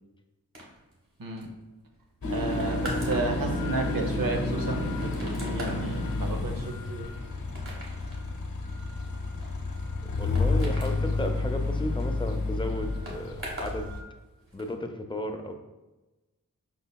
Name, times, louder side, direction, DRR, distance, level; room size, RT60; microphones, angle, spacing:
sound 1, 0.5-13.8 14.1-14.7, right 1 dB, 40° right, 1.4 m, -43 dB
voice 1, 1.2-1.5 2.3-7.1, right 2 dB, 75° right, 3 dB, 0.8 m, -33 dB
sound 2, 2.2-14.0, left 2 dB, 80° left, 0.9 m, -30 dB
voice 2, 10.0-13.9 14.5-15.5, left 1 dB, 15° left, 5 dB, 0.5 m, -34 dB
5.4 x 4.1 x 2.3 m, 1.1 s
wide cardioid pair, 45°, 34 cm